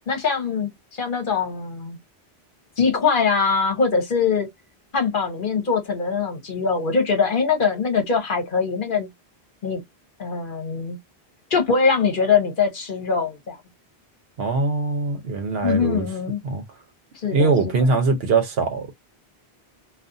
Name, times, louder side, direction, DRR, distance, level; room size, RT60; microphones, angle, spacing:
voice 1, 0.1-2.0 2.8-4.5 4.9-9.1 9.6-9.8 10.2-11.0 11.5-13.6 15.6-16.4 17.2-17.5, left 5 dB, 55° left, 1.0 m, -22 dB
voice 2, 14.4-16.1 16.4-16.6 17.3-18.9, right 4 dB, 70° right, 0.9 m, -22 dB
2.5 x 2.3 x 2.5 m
omnidirectional pair, 1.1 m